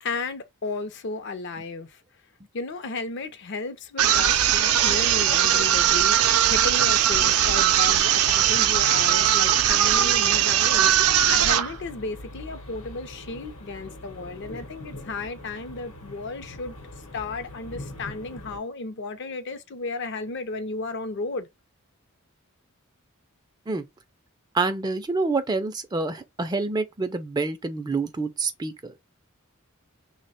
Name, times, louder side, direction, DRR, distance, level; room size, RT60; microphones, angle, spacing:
voice 1, 0.0-2.0 2.5-16.7 17.1-21.5, left 3 dB, 55° left, 0.5 m, -34 dB
sound 1, 4.0-11.7, right 10 dB, 90° right, 0.5 m, -20 dB
sound 2, 8.4-18.6, left 1 dB, 80° left, 0.9 m, -42 dB
voice 2, 24.5-28.9, right 3 dB, 20° right, 0.3 m, -27 dB
3.1 x 2.1 x 4.1 m
head